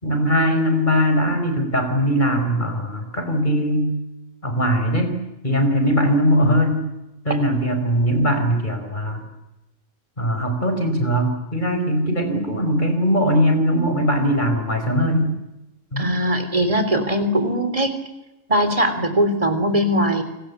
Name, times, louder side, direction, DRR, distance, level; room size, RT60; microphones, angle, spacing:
voice 1, 0.0-3.9 4.4-5.2 5.4-6.8 7.3-9.2 10.2-15.3 15.9-16.1, equal, 35° left, 7 dB, 5.1 m, -20 dB
voice 2, 16.0-17.9 18.5-20.2, equal, 25° right, 8 dB, 3.6 m, -20 dB
29.5 x 20.0 x 8.4 m, 0.97 s
omnidirectional pair, 1.4 m